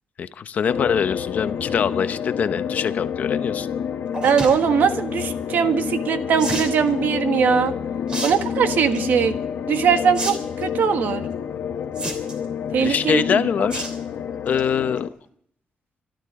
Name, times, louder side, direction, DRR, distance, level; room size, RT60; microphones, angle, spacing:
voice 1, 0.2-3.7 12.8-13.9 14.5-15.1, left 7 dB, 55° left, 11 dB, 0.8 m, -23 dB
sound 1, 0.7-15.1, left 7 dB, 80° left, 1.1 m, -28 dB
sound 2, 4.1-4.5 6.4-6.7 8.1-8.3 8.7-9.0 10.1-10.3 10.6-10.7 12.0-12.5 13.7-14.0 14.4-14.6 15.0-15.1 15.3-15.4, right 2 dB, 30° right, 3.2 m, -29 dB
voice 2, 4.2-7.7 8.2-9.4 9.7-11.2 12.7-13.4, right 7 dB, 75° right, 8 dB, 1.5 m, -20 dB
26.0 x 12.0 x 3.7 m, 0.65 s
wide cardioid pair, 160°, 3 cm